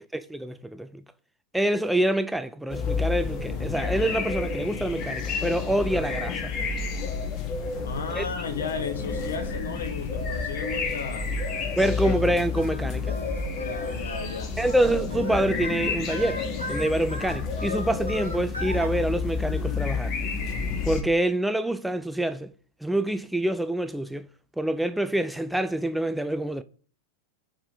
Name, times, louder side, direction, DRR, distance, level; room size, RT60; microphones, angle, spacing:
voice 1, 0.1-1.0 1.5-6.5 8.1-8.3 11.7-13.2 14.6-16.4 16.7-20.1 20.8-22.5 22.8-24.3 24.6-26.6, right 1 dB, 5° right, 0.3 m, -26 dB
sound 1, 2.7-21.0, left 4 dB, 35° left, 1.2 m, -30 dB
voice 2, 7.8-11.3 11.8-12.2 13.5-14.5, left 5 dB, 65° left, 1.2 m, -34 dB
Singing, 12.0-18.9, equal, 90° right, 1.7 m, -39 dB
5.1 x 5.0 x 5.4 m
figure-of-eight pair, 90°, 0 cm